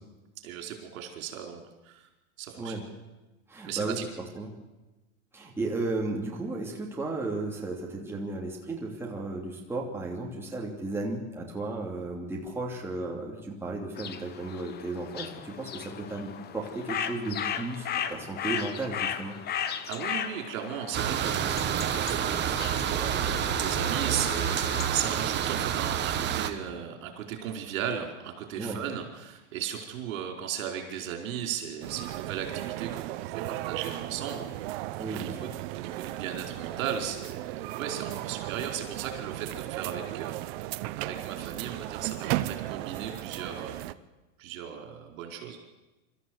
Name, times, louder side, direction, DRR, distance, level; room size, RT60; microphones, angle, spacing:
voice 1, 0.4-2.1 2.4-2.8 3.7-4.1 19.8-40.4 41.0-43.8 44.4-45.6, right 9 dB, 65° right, 3 dB, 4.9 m, -36 dB
voice 2, 3.5-4.0 4.3-4.5 5.3-19.4 28.6-28.8 35.0-35.5, right 2 dB, 5° right, -2 dB, 2.8 m, -34 dB
sound 1, 14.0-24.9, left 8 dB, 25° left, 1.1 m, -36 dB
sound 2, 20.9-26.5, right 9 dB, 25° right, 1.3 m, -28 dB
sound 3, 31.8-43.9, right 16 dB, 45° right, 0.9 m, -36 dB
25.5 x 14.0 x 8.1 m, 1.1 s
supercardioid pair, 140°, 43 cm